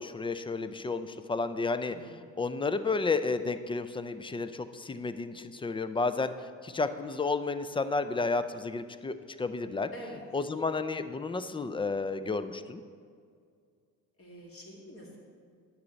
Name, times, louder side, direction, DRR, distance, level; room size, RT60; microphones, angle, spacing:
voice 1, 0.0-1.9 2.4-6.3 6.6-9.9 10.3-12.8, left 3 dB, 15° left, 11 dB, 0.4 m, -31 dB
voice 2, 1.9-2.2 9.9-10.2 14.2-15.2, equal, 35° left, -2 dB, 2.3 m, -46 dB
9.6 x 6.8 x 4.0 m, 2.2 s
supercardioid pair, 70°, 37 cm